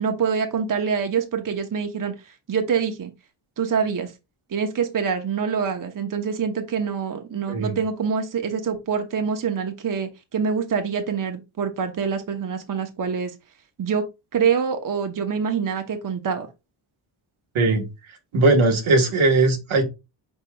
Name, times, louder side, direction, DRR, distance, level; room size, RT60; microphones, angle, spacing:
voice 1, 0.0-3.1 3.6-4.1 4.5-13.3 13.8-14.0 14.3-16.5, right 6 dB, 45° right, 0.8 m, -25 dB
voice 2, 17.5-17.9 18.3-19.9, right 2 dB, 85° right, 1.3 m, -19 dB
5.4 x 4.4 x 2.2 m
cardioid pair, 85°, 47 cm